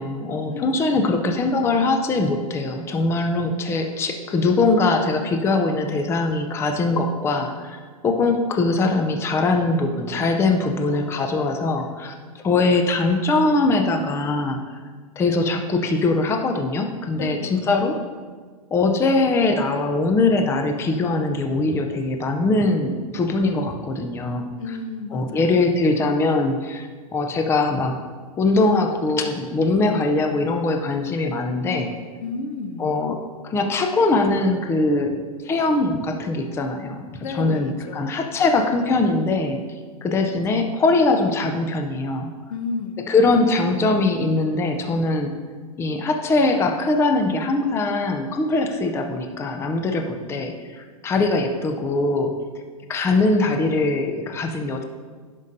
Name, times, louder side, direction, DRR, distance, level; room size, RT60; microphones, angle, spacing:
voice 1, 0.0-14.6 15.2-18.0 18.7-24.8 25.1-28.0 28.4-31.9 32.8-35.1 35.4-39.6 40.0-42.3 43.1-45.3 45.8-52.3 52.9-54.8, left 3 dB, 15° left, 5 dB, 0.5 m, -22 dB
voice 2, 17.2-17.7 24.6-25.6 32.2-32.9 37.2-38.1 42.5-43.0, left 4 dB, 65° left, 8 dB, 0.7 m, -32 dB
11.5 x 5.3 x 2.7 m, 1.5 s
hypercardioid pair, 120°, 19 cm